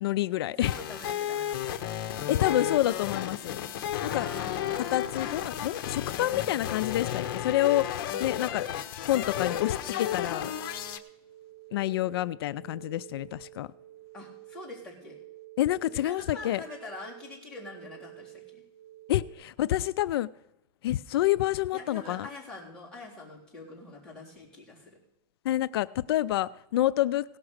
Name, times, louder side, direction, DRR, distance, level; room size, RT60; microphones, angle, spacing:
voice 1, 0.0-0.7 2.3-3.6 4.0-4.3 4.9-7.9 8.2-8.7 9.0-10.5 11.7-13.7 15.6-16.6 19.1-20.3 20.8-22.3 25.4-27.4, left 14 dB, 85° left, 0.4 m, -28 dB
sound 1, 0.6-11.0, left 10 dB, 60° left, 0.9 m, -33 dB
voice 2, 0.6-2.6 4.1-4.9 14.1-15.2 15.9-18.6 21.7-25.0, left 3 dB, 5° left, 3.8 m, -45 dB
sound 2, 9.3-19.3, right 18 dB, 55° right, 1.5 m, -50 dB
17.5 x 5.9 x 6.4 m
supercardioid pair, 165°, 12 cm